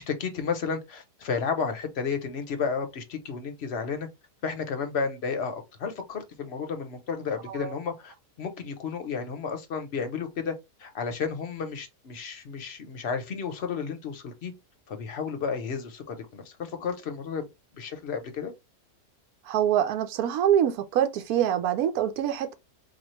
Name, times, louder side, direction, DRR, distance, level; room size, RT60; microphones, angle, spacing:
voice 1, 0.0-4.1 4.4-10.5 10.8-14.5 14.9-17.5 17.7-18.5, left 5 dB, 50° left, 0.9 m, -32 dB
voice 2, 19.4-22.5, right 10 dB, 80° right, 1.1 m, -25 dB
4.2 x 2.4 x 3.1 m
omnidirectional pair, 1.6 m